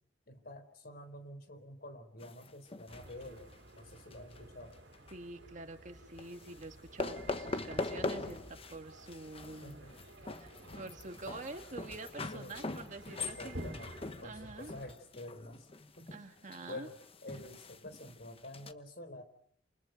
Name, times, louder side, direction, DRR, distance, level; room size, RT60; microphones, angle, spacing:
voice 1, 0.3-3.5 3.8-4.8 9.6-9.9 12.3-12.5 13.2-15.7 16.0-16.1 16.7-17.0 17.2-19.2, left 1 dB, 60° left, 9 dB, 3.9 m, -48 dB
sound 1, 2.2-4.4 4.7-5.1 6.2-6.7 7.0-8.8 9.1-18.7, left 3 dB, 30° left, 1.2 m, -42 dB
sound 2, 2.9-14.9, right 1 dB, 75° right, 2.9 m, -52 dB
voice 2, 5.1-9.9 10.4-13.6 14.2-14.7 16.1-16.9, right 2 dB, 45° right, 5 dB, 1.7 m, -47 dB
28.5 x 28.5 x 5.2 m, 0.65 s
head